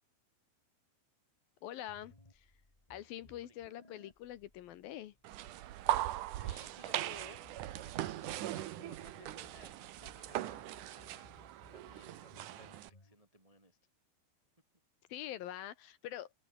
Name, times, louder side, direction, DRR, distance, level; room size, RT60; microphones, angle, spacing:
voice 1, 1.6-2.5 2.9-5.1 15.1-16.3, left 12 dB, 70° left, 2.4 m, -45 dB
sound 1, 1.9-13.1, left 2 dB, 10° left, 2.4 m, -63 dB
sound 2, 5.2-12.9, right 14 dB, 80° right, 1.8 m, -39 dB
voice 2, 6.4-11.3 11.7-13.8, left 1 dB, 65° right, 0.3 m, -58 dB
omnidirectional pair, 5.2 m